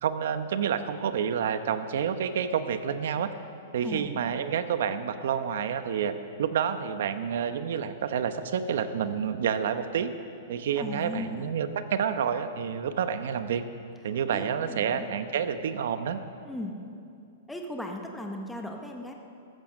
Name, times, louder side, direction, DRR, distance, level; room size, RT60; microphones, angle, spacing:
voice 1, 0.0-3.3 3.7-6.1 6.4-10.1 10.5-13.6 14.0-16.2, right 7 dB, 65° right, 10 dB, 1.0 m, -29 dB
voice 2, 10.8-11.5 14.3-15.0 16.4-16.8 17.5-19.1, left 1 dB, 5° left, 2 dB, 1.1 m, -37 dB
14.0 x 14.0 x 6.5 m, 2.6 s
supercardioid pair, 165°, 0 cm